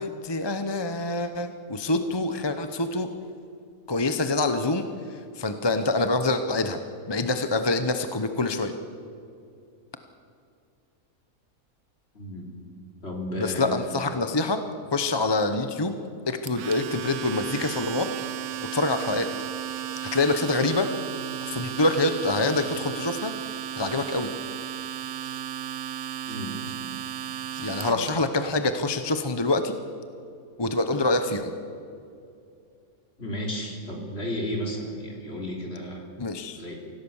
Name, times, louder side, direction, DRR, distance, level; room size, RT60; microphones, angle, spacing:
voice 1, 0.0-3.1 3.9-6.8 7.1-8.7 13.3-14.6 14.9-15.9 16.3-18.1 18.7-19.3 20.0-20.9 21.4-24.3 27.6-29.8 30.6-31.5 36.2-36.6, left 2 dB, 20° left, 8 dB, 0.8 m, -26 dB
voice 2, 12.1-12.5 13.0-13.8 26.3-26.7 27.3-27.4 27.8-28.1 33.2-36.1 36.6-36.7, left 1 dB, 40° left, 0 dB, 4.0 m, -33 dB
Domestic sounds home sounds, 16.5-28.1, right 11 dB, 80° right, 1.2 m, -34 dB
25.5 x 16.5 x 7.2 m, 2.5 s
omnidirectional pair, 1.6 m